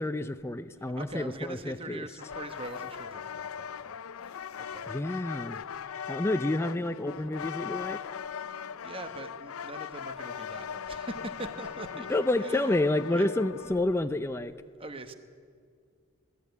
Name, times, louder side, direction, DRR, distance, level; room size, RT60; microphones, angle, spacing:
voice 1, 0.0-2.1 4.9-5.6 6.1-8.0 12.1-14.5, left 2 dB, 10° left, 9 dB, 0.4 m, -29 dB
voice 2, 0.8-5.0 8.2-12.8 13.1-13.3 14.8-15.1, right 2 dB, 25° right, 9 dB, 1.0 m, -43 dB
sound 1, 2.2-14.0, left 7 dB, 85° left, 0.5 m, -39 dB
20.5 x 13.5 x 9.5 m, 2.2 s
head